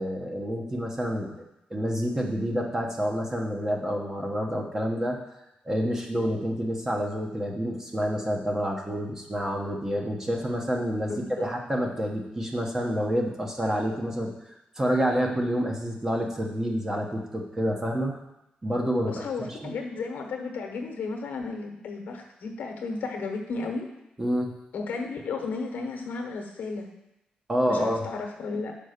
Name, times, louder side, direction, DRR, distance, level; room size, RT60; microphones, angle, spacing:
voice 1, 0.0-1.4 1.7-5.2 5.6-14.3 14.8-18.2 18.6-19.7 24.2-24.5 27.5-28.1, equal, 20° right, 1 dB, 1.0 m, -28 dB
voice 2, 11.1-11.5 19.0-23.9 24.7-26.9 27.6-28.8, left 4 dB, 75° left, 3 dB, 1.1 m, -34 dB
5.4 x 5.3 x 6.6 m, 0.89 s
wide cardioid pair, 140°, 3 cm